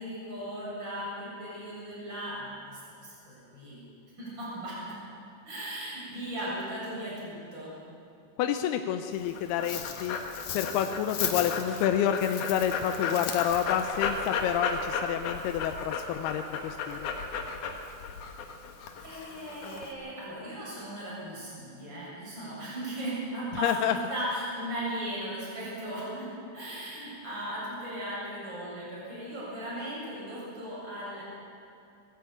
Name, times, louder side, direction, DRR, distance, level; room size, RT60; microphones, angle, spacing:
voice 1, 0.0-3.8 4.2-5.0 5.4-7.7 19.0-26.3 26.5-31.2, right 1 dB, 25° right, -7 dB, 8.2 m, -37 dB
voice 2, 8.4-10.2 10.5-17.1 23.6-24.0, left 9 dB, 80° left, 7 dB, 2.6 m, -29 dB
Dog, 9.1-19.9, left 5 dB, 60° left, 2.5 m, -34 dB
21.5 x 15.0 x 8.7 m, 2.6 s
omnidirectional pair, 4.7 m